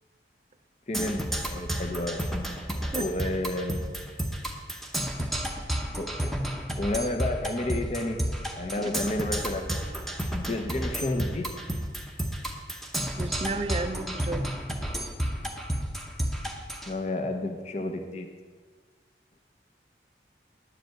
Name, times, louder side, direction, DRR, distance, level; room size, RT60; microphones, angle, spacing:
voice 1, 0.9-2.2 3.0-3.8 6.0-6.3 6.8-8.2 8.5-9.8 10.5-11.5 16.9-18.3, left 1 dB, 40° left, 5 dB, 0.7 m, -31 dB
Percussion, 0.9-16.9, equal, ahead, 0.8 m, -32 dB
voice 2, 2.9-3.3 5.2-5.8 8.8-8.9 13.2-14.5, right 2 dB, 30° right, 7 dB, 0.4 m, -34 dB
10.5 x 4.9 x 7.7 m, 1.5 s
head